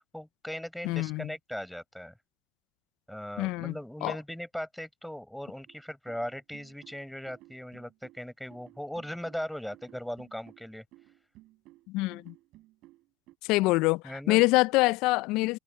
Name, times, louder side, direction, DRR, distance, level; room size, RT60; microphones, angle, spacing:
voice 1, 0.0-2.1 3.1-10.8 14.0-14.4, equal, ahead, 5.9 m, -39 dB
voice 2, 0.8-1.3 3.4-3.7 4.0-4.2 11.9-12.3 13.5-15.6, left 22 dB, 65° left, 0.5 m, -25 dB
sound 1, 5.7-13.4, right 18 dB, 60° right, 7.4 m, -56 dB
hypercardioid pair, 80°, 0 cm